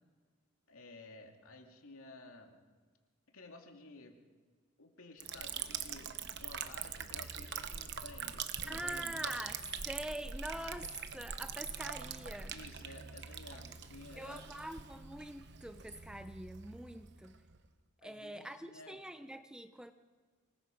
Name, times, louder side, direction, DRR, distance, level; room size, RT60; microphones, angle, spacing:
voice 1, 0.7-2.6 3.3-4.2 4.8-9.3 12.5-14.7 18.0-19.0, left 2 dB, 75° left, 2.5 m, -54 dB
Liquid, 5.2-17.7, right 7 dB, 55° right, 1.0 m, -43 dB
voice 2, 8.7-12.5 14.2-17.4 18.0-19.9, right 1 dB, 5° right, 0.5 m, -44 dB
25.0 x 20.0 x 5.3 m
head